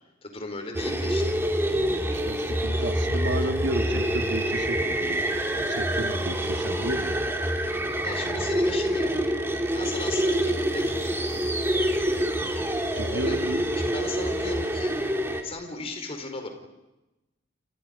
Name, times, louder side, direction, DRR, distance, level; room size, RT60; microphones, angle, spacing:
voice 1, 0.2-1.4 7.9-9.1 9.7-11.4 13.1-13.4 13.8-15.0 15.4-16.5, left 2 dB, 30° left, 5 dB, 4.5 m, -36 dB
sound 1, 0.7-15.4, equal, 10° right, 3.0 m, -26 dB
voice 2, 1.9-7.2 13.0-13.6, right 1 dB, 60° right, 7 dB, 1.6 m, -33 dB
29.5 x 29.0 x 5.3 m, 0.99 s
head